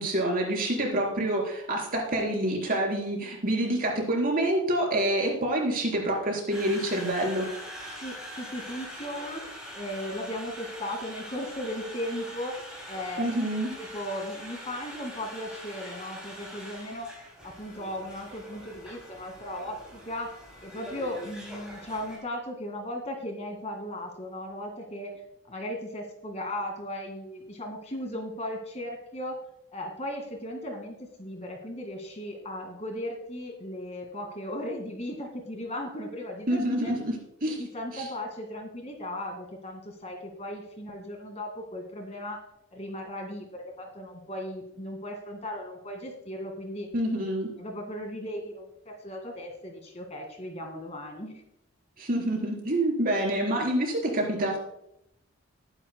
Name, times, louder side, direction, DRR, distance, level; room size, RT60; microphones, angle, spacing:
voice 1, 0.0-7.5 13.2-13.7 36.5-37.1 37.4-37.6 37.9-38.0 46.9-47.5 52.0-54.6, right 1 dB, 40° right, 0 dB, 3.9 m, -27 dB
Conversation, 6.5-22.2, equal, 5° right, 4.8 m, -43 dB
voice 2, 8.0-9.4 9.7-13.2 13.7-17.2 17.4-20.3 20.6-25.1 25.5-29.4 29.7-36.9 37.6-42.4 42.7-46.9 47.5-51.4, left 1 dB, 30° left, 3 dB, 1.9 m, -37 dB
20.0 x 10.0 x 2.2 m, 0.78 s
head